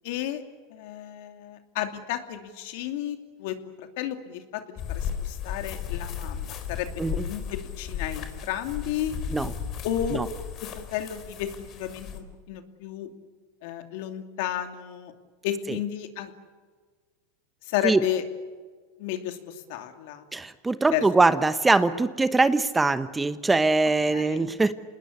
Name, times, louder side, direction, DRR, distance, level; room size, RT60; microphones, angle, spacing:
voice 1, 0.0-0.4 0.7-3.6 4.0-9.1 9.8-10.2 10.6-13.1 13.6-15.1 15.4-16.3 17.6-18.2 19.0-20.2 20.9-21.0 24.1-24.5, left 11 dB, 65° left, 7 dB, 2.7 m, -32 dB
sound 1, 4.8-12.2, left 8 dB, 40° left, 4.0 m, -35 dB
voice 2, 20.3-24.7, right 3 dB, 10° right, 12 dB, 1.0 m, -22 dB
27.5 x 20.0 x 8.2 m, 1.5 s
supercardioid pair, 125°, 0 cm